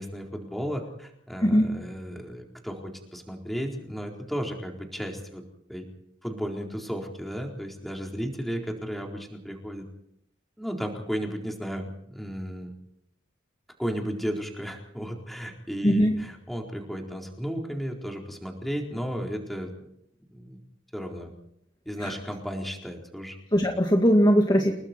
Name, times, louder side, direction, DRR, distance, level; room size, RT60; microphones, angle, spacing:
voice 1, 0.0-5.4 5.7-5.9 6.2-9.9 10.6-12.7 13.8-19.7 20.3-20.6 20.9-21.3 21.9-23.4, equal, ahead, 0 dB, 4.2 m, -34 dB
voice 2, 15.8-16.1 22.0-22.1 23.5-24.7, equal, 20° left, 1 dB, 2.1 m, -20 dB
30.0 x 20.0 x 4.6 m, 0.74 s
head